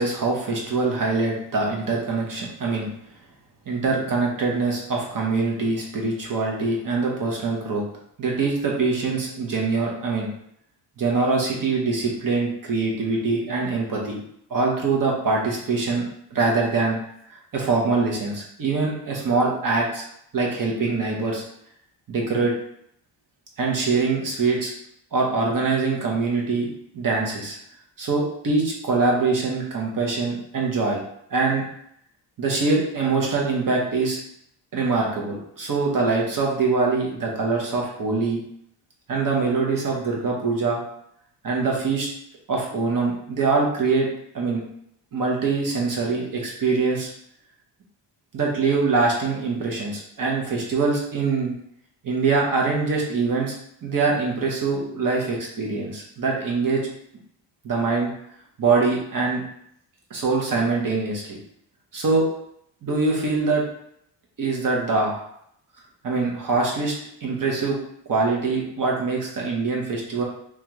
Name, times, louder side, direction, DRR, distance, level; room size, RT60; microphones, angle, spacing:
voice 1, 0.0-2.9 3.7-7.8 8.2-10.3 11.0-14.2 14.5-16.0 16.3-17.0 17.5-20.0 20.3-21.4 22.1-22.5 23.6-24.7 25.1-26.7 26.9-27.6 28.0-31.0 31.3-31.6 32.4-34.2 34.7-38.4 39.1-40.8 41.4-42.1 42.5-44.1 44.3-44.6 45.1-47.1 48.3-51.5 52.0-53.5 53.8-56.8 57.6-58.1 58.6-59.4 60.1-61.4 61.9-62.3 62.8-63.6 64.4-65.2 66.0-66.9 67.2-67.8 68.1-70.2, right 4 dB, 45° right, -2 dB, 1.0 m, -23 dB
3.6 x 3.1 x 3.1 m, 0.72 s
wide cardioid pair, 155°, 45 cm